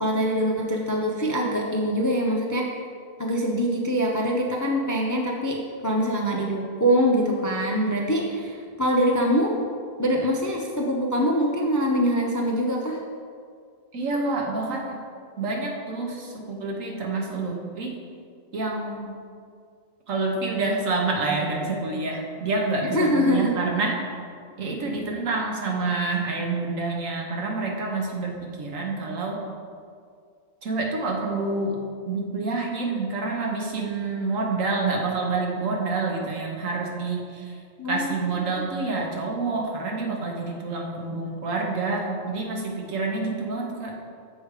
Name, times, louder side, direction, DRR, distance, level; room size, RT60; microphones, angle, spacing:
voice 1, 0.0-2.6 3.2-9.5 10.0-13.0 22.9-23.5 37.8-38.1, equal, 30° left, -1 dB, 0.3 m, -24 dB
voice 2, 13.9-15.0 15.4-18.0 18.5-19.2 20.1-24.0 24.6-29.4 30.6-37.5 37.9-44.0, right 3 dB, 85° right, 0 dB, 1.5 m, -28 dB
7.0 x 5.0 x 4.8 m, 2.2 s
omnidirectional pair, 1.3 m